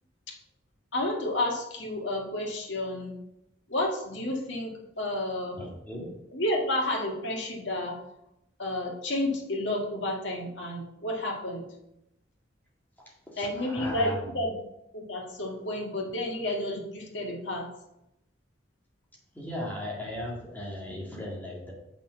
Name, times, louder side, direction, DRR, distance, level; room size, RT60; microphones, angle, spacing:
voice 1, 0.9-3.1 3.7-5.6 6.3-8.0 8.6-11.7 13.4-14.5 14.9-17.7, left 1 dB, 70° left, -1 dB, 2.1 m, -31 dB
voice 2, 5.6-6.0 13.3-14.3 19.3-21.7, left 1 dB, 10° left, -4 dB, 2.1 m, -37 dB
6.9 x 6.1 x 5.7 m, 0.86 s
head